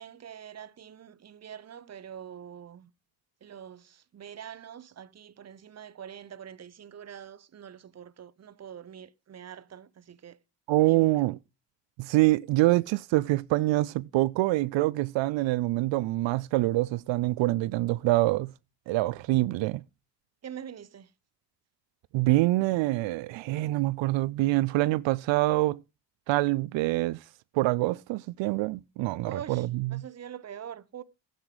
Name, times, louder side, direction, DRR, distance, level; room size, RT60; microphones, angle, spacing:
voice 1, 0.0-2.9 3.4-10.4 10.9-11.2 20.4-21.1 29.2-31.0, right 9 dB, 35° right, 0.8 m, -44 dB
voice 2, 10.7-11.4 12.0-18.5 18.9-19.8 22.1-25.8 26.3-27.2 27.5-30.0, right 18 dB, 90° right, 0.5 m, -25 dB
11.5 x 7.7 x 4.9 m
cardioid pair, 100°, 44 cm